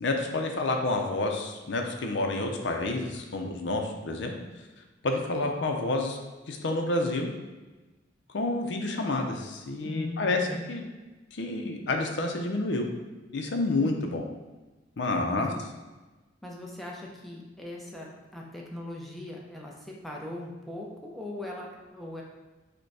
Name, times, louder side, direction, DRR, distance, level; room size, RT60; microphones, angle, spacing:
voice 1, 0.0-4.3 5.0-6.2 6.5-7.3 8.3-10.9 11.3-12.9 13.3-14.2 15.0-15.5, left 2 dB, 75° left, 3 dB, 0.6 m, -29 dB
voice 2, 9.8-10.7 15.3-15.6 16.4-22.2, left 1 dB, ahead, -3 dB, 0.6 m, -40 dB
5.0 x 2.2 x 4.7 m, 1.2 s
head